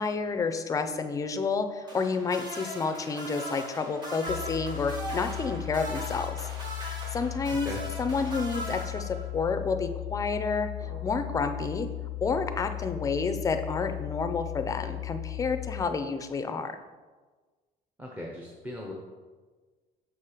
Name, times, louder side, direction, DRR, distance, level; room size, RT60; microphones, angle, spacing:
voice 1, 0.0-6.5 7.1-7.7 8.0-10.7 11.0-11.9 12.2-16.8, left 4 dB, 20° left, 8 dB, 0.4 m, -30 dB
sound 1, 1.9-9.5 10.8-11.0, right 1 dB, 25° right, 1.7 m, -40 dB
sound 2, 4.3-15.9, left 19 dB, 85° left, 0.4 m, -37 dB
voice 2, 18.0-18.9, left 1 dB, 10° right, -2 dB, 0.7 m, -38 dB
6.7 x 4.4 x 4.9 m, 1.4 s
cardioid pair, 150°, 16 cm